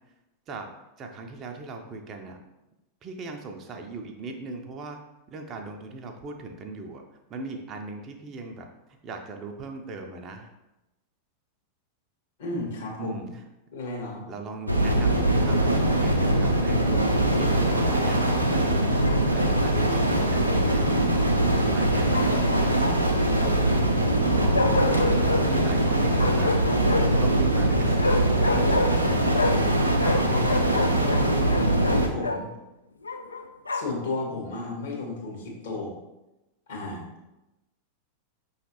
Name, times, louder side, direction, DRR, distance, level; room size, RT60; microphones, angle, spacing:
voice 1, 1.0-2.4 3.0-5.0 5.3-7.0 7.3-8.7 9.0-10.5 13.0-13.3 14.3-17.0 17.3-19.0 19.3-21.2 21.4-23.0 23.4-26.5 27.2-29.0 29.9-30.8, right 3 dB, 30° right, 3 dB, 0.5 m, -38 dB
voice 2, 12.4-13.3 13.7-14.3 31.9-32.5 33.7-35.9 36.7-37.0, left 2 dB, 60° left, -2 dB, 1.4 m, -34 dB
sound 1, 14.7-32.1, right 1 dB, 90° right, 0.5 m, -22 dB
Bark, 19.0-19.7 22.1-23.2 24.5-25.4 26.1-27.2 28.0-29.7 30.0-32.4 33.0-34.0, left 2 dB, 75° left, 0.4 m, -28 dB
5.6 x 3.2 x 2.9 m, 0.96 s
figure-of-eight pair, 90°, 0 cm